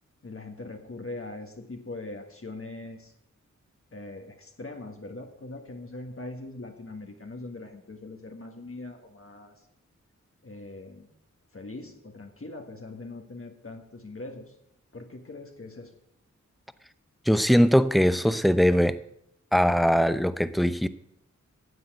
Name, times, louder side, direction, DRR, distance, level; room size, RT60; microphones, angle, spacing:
voice 1, 0.2-3.1 3.9-9.5 10.4-11.1 11.5-14.5 14.9-15.9, left 2 dB, 45° left, 3 dB, 1.8 m, -41 dB
voice 2, 17.3-19.0 19.5-20.9, equal, ahead, 13 dB, 0.7 m, -21 dB
9.8 x 7.7 x 9.0 m, 0.78 s
cardioid pair, 45°, 31 cm